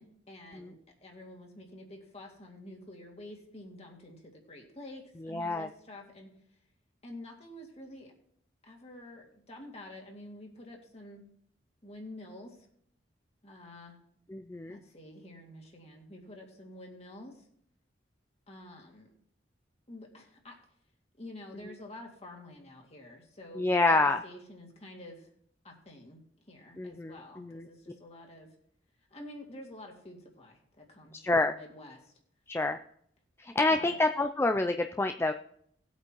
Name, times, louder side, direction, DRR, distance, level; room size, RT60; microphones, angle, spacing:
voice 1, 0.0-6.3 7.0-8.1 8.6-11.2 11.8-12.7 13.4-14.0 14.7-17.4 18.5-19.1 19.9-20.6 21.2-25.3 25.6-26.2 26.5-28.5 29.1-32.1 33.7-34.0, left 1 dB, 35° left, 0 dB, 2.2 m, -48 dB
voice 2, 5.2-5.7 14.3-14.8 23.6-24.2 26.8-27.7 31.1-31.5 32.5-32.8 33.4-35.3, left 2 dB, 15° left, 7 dB, 0.3 m, -27 dB
18.5 x 8.2 x 3.0 m, 0.68 s
head